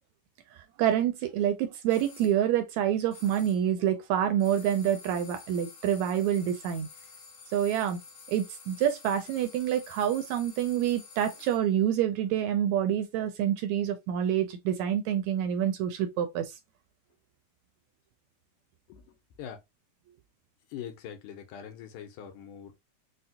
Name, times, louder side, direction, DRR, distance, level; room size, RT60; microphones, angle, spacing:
voice 1, 0.8-6.9 7.5-8.0 8.3-16.5, right 10 dB, 80° right, 1.7 m, -27 dB
sound 1, 1.9-2.4 3.1-3.7 4.4-11.8, left 5 dB, 65° left, 2.2 m, -50 dB
voice 2, 20.7-22.8, left 9 dB, 85° left, 2.3 m, -42 dB
5.3 x 2.1 x 2.7 m
omnidirectional pair, 3.6 m